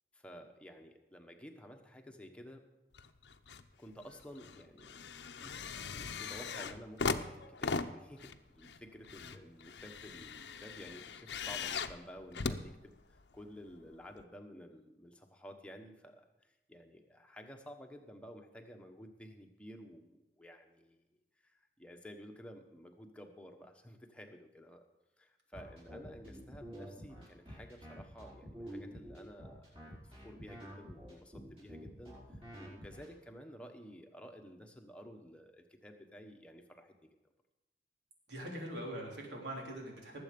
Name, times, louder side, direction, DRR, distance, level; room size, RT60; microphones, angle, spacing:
voice 1, 0.1-2.6 3.8-21.0 21.4-24.8 25.2-29.6 29.9-32.2 32.6-37.1, equal, 5° left, 3 dB, 1.1 m, -53 dB
sound 1, 2.9-3.7 4.0-13.4 14.2-14.3, left 5 dB, 85° left, 0.7 m, -40 dB
sound 2, 25.5-33.1, equal, 35° right, 4.6 m, -48 dB
voice 2, 38.3-40.2, right 1 dB, 90° right, -1 dB, 3.6 m, -42 dB
19.0 x 7.8 x 5.3 m, 1.0 s
head